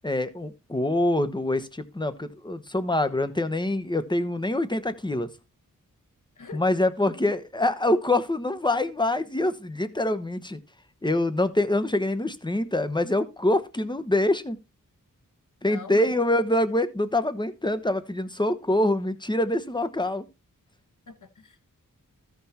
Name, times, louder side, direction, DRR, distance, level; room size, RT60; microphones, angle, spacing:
voice 1, 0.0-5.3 6.5-10.6 11.0-14.6 15.6-20.3, left 1 dB, 15° left, 1.1 m, -25 dB
voice 2, 15.6-16.1 21.1-21.6, left 4 dB, 65° left, 1.6 m, -42 dB
14.0 x 5.9 x 4.3 m
wide cardioid pair, 65°, 33 cm